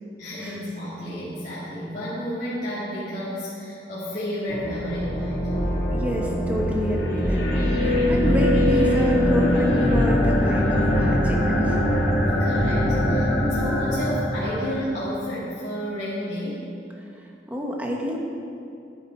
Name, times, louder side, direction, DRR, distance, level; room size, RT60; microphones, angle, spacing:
voice 1, 0.2-5.5 12.4-16.7, equal, 40° left, -12 dB, 2.0 m, -31 dB
sound 1, 4.5-15.0, left 1 dB, 75° left, 2.7 m, -22 dB
voice 2, 5.9-11.8 17.5-18.2, equal, 10° right, -2 dB, 1.2 m, -28 dB
10.5 x 8.7 x 4.5 m, 2.5 s
head